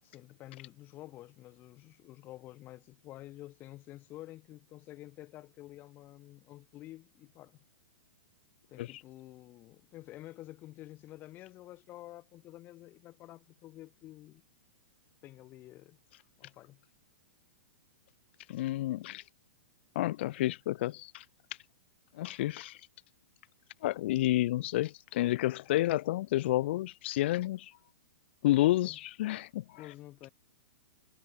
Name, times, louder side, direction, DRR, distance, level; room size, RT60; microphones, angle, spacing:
voice 1, 0.0-7.6 8.7-14.4 15.2-16.0 16.4-16.8 28.8-29.0 29.7-30.3, left 15 dB, 25° left, 6.5 m, -50 dB
voice 2, 18.5-19.2 19.9-21.2 22.2-22.9 23.8-27.8 28.4-29.8, left 15 dB, 50° left, 0.6 m, -30 dB
hypercardioid pair, 155°, 8 cm